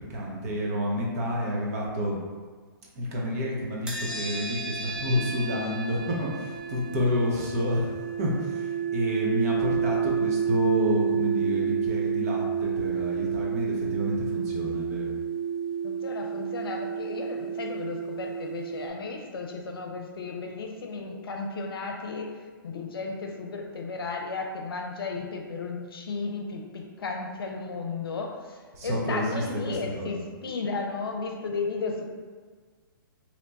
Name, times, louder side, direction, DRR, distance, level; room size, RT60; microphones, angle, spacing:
voice 1, 0.1-2.2 2.9-7.9 8.2-15.1 28.7-30.2, equal, 40° right, -3 dB, 0.9 m, -29 dB
sound 1, 3.9-18.9, right 7 dB, 5° right, 0.5 m, -30 dB
voice 2, 15.8-22.3 22.6-30.2 30.4-32.0, left 4 dB, 80° left, 1 dB, 0.6 m, -34 dB
3.0 x 2.2 x 4.0 m, 1.5 s
hypercardioid pair, 140°, 12 cm